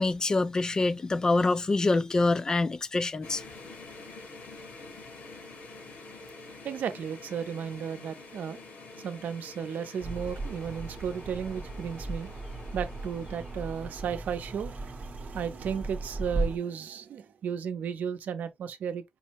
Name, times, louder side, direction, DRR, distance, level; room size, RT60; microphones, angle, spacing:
voice 1, 0.0-3.4, left 3 dB, 25° left, 0.4 m, -25 dB
sound 1, 3.2-14.5, left 3 dB, 85° left, 1.9 m, -47 dB
voice 2, 6.6-8.6 9.0-12.3 12.7-19.0, right 7 dB, 85° right, 0.6 m, -34 dB
sound 2, 10.0-16.6, right 2 dB, 25° right, 0.8 m, -36 dB
5.3 x 2.1 x 2.9 m
wide cardioid pair, 165°, 3 cm